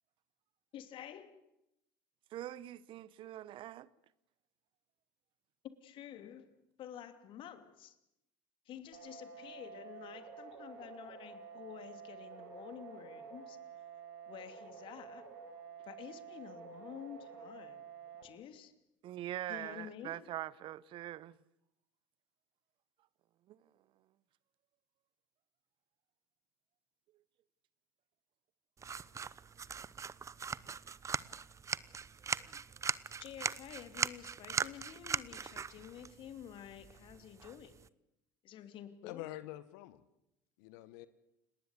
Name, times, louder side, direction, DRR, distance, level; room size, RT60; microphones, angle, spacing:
voice 1, 0.7-1.4 5.6-6.5 6.8-8.0 8.7-13.6 14.3-15.3 15.9-17.9 18.2-18.7 19.5-20.2 33.2-37.7 38.4-39.2, left 10 dB, 55° left, 2.8 m, -50 dB
voice 2, 2.3-3.9 19.0-21.4 23.5-23.6, right 13 dB, 55° right, 0.9 m, -43 dB
sound 1, 8.9-18.2, right 6 dB, 80° right, 5.3 m, -50 dB
sound 2, 28.8-37.9, right 6 dB, 30° right, 0.9 m, -40 dB
voice 3, 39.0-40.0 40.6-41.1, left 15 dB, 70° left, 1.2 m, -46 dB
29.5 x 19.0 x 8.3 m
hypercardioid pair, 70°, 11 cm